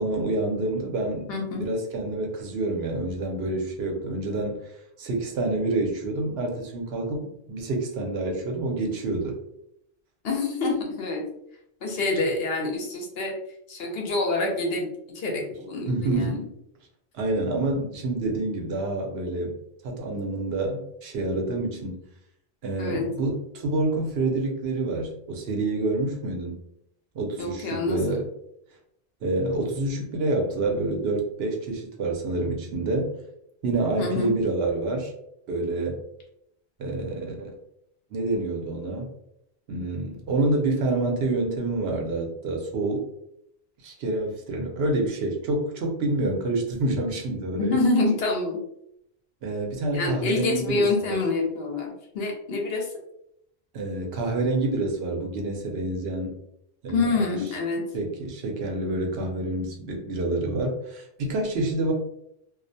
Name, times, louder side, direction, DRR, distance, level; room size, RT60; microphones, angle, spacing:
voice 1, 0.0-1.3 1.6-4.6 5.0-9.4 15.9-16.5 17.1-19.6 19.8-22.0 22.6-26.6 27.1-28.2 29.2-33.1 33.6-35.1 35.5-36.0 36.8-37.5 38.1-39.1 39.7-43.1 43.8-47.8 49.4-51.2 53.7-56.4 56.8-57.2 57.9-61.9, right 2 dB, 75° right, 2 dB, 0.8 m, -27 dB
voice 2, 1.3-1.6 10.2-11.2 11.8-13.3 13.7-14.9 15.1-16.4 22.8-23.1 27.4-28.2 34.0-34.3 47.6-48.6 49.9-52.9 56.9-57.8, left 3 dB, 70° left, 0 dB, 0.9 m, -26 dB
2.3 x 2.1 x 2.6 m, 0.75 s
omnidirectional pair, 1.1 m